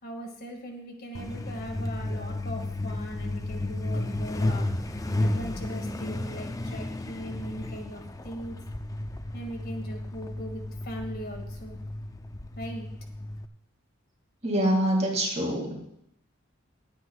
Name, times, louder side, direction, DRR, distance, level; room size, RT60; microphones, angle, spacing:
voice 1, 0.0-8.6 9.3-11.8 12.6-12.9, equal, 50° left, 3 dB, 2.0 m, -39 dB
Truck, 1.1-13.5, left 1 dB, 15° left, 0.5 m, -33 dB
voice 2, 14.4-15.8, right 1 dB, 35° right, 0 dB, 2.4 m, -25 dB
23.0 x 8.8 x 2.4 m, 0.75 s
head